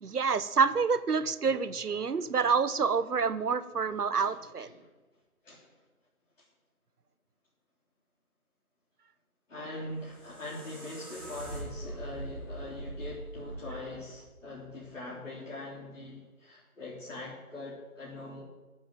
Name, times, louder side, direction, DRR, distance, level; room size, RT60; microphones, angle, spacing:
voice 1, 0.0-4.7, right 5 dB, 90° right, 14 dB, 1.1 m, -28 dB
voice 2, 4.2-4.9 5.4-5.8 6.4-6.5 9.5-18.4, left 2 dB, 55° left, -5 dB, 3.5 m, -42 dB
sound 1, 9.9-14.9, right 1 dB, 5° left, 1.7 m, -43 dB
12.5 x 7.7 x 9.0 m, 1.2 s
figure-of-eight pair, 180°, 44 cm